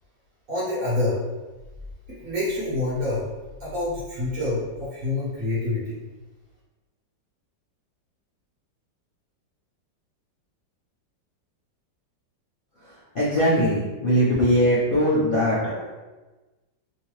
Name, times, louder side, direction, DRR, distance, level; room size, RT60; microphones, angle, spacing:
voice 1, 0.5-1.2 2.2-3.3 3.6-6.0, left 2 dB, 50° right, -9 dB, 1.3 m, -27 dB
voice 2, 13.1-15.9, equal, 65° left, -10 dB, 0.5 m, -21 dB
3.1 x 2.7 x 3.0 m, 1.2 s
omnidirectional pair, 1.9 m